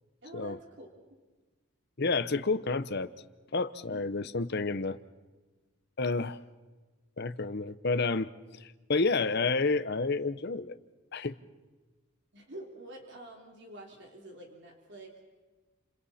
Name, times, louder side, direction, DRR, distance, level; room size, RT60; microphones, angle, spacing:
voice 1, 0.2-0.9 3.9-4.0 12.3-15.2, right 1 dB, 55° right, 0 dB, 3.2 m, -47 dB
voice 2, 2.0-3.1 3.5-5.0 6.0-6.4 7.2-8.3 8.6-10.7 11.1-11.3, left 3 dB, 50° left, 12 dB, 0.8 m, -30 dB
30.0 x 28.0 x 4.3 m, 1.3 s
head